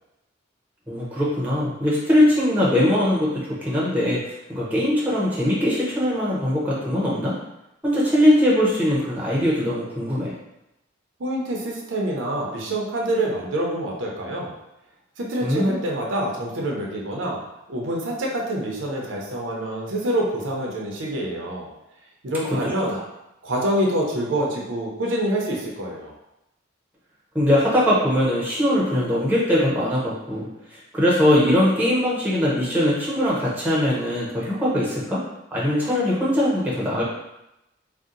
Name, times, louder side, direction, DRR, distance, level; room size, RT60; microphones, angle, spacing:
voice 1, 0.9-4.2 4.5-7.3 7.8-10.3 15.4-15.7 22.9-23.0 27.3-30.5 30.9-35.2 35.5-37.0, left 1 dB, 10° right, -6 dB, 0.7 m, -21 dB
voice 2, 11.2-14.5 15.2-17.4 17.7-21.7 22.2-23.0 23.4-26.1, right 1 dB, 70° right, -2 dB, 0.6 m, -26 dB
2.7 x 2.1 x 3.7 m, 0.90 s
head